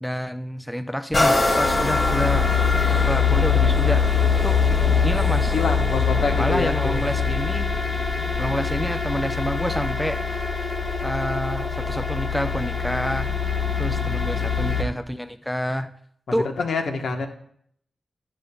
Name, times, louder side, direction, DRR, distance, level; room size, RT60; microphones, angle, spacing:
voice 1, 0.0-2.4 2.9-4.1 4.4-4.6 5.0-5.5 6.4-7.7 8.4-10.2 11.0-15.9 16.3-16.5, equal, ahead, 9 dB, 0.3 m, -28 dB
sound 1, 1.1-8.7 9.3-9.4, left 2 dB, 45° left, 2.4 m, -27 dB
sound 2, 1.1-14.8, left 6 dB, 30° left, 1.2 m, -23 dB
voice 2, 5.5-7.1 13.9-14.2 16.6-17.3, left 4 dB, 75° left, 4 dB, 1.1 m, -26 dB
12.0 x 10.5 x 2.3 m, 0.65 s
wide cardioid pair, 155°, 0 cm